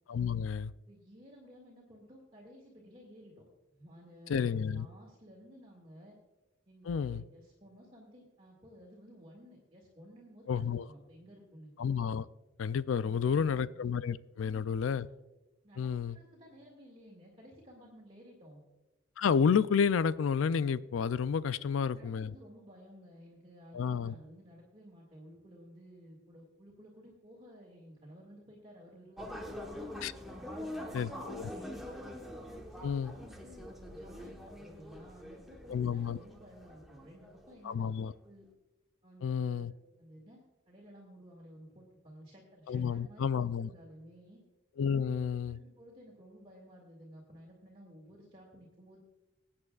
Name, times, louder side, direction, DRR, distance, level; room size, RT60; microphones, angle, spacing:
voice 1, 0.1-0.7 4.3-4.9 6.9-7.2 10.5-10.9 11.8-12.3 12.6-15.1 15.8-16.2 19.2-22.3 23.7-24.1 30.0-30.1 30.9-31.5 32.8-33.1 35.7-36.2 37.6-38.1 39.2-39.7 42.7-43.7 44.8-45.6, left 6 dB, 85° left, 17 dB, 0.4 m, -30 dB
voice 2, 0.9-3.4 3.7-6.2 6.7-11.7 13.0-13.7 14.3-14.8 15.6-18.6 21.5-29.9 30.4-32.1 32.5-37.9 38.2-38.5 39.0-39.7 40.0-44.4 44.9-45.2 45.5-49.0, equal, 30° right, -3 dB, 2.1 m, -55 dB
sound 1, 29.2-38.1, left 1 dB, ahead, 1.1 m, -45 dB
21.5 x 8.7 x 2.4 m, 1.0 s
head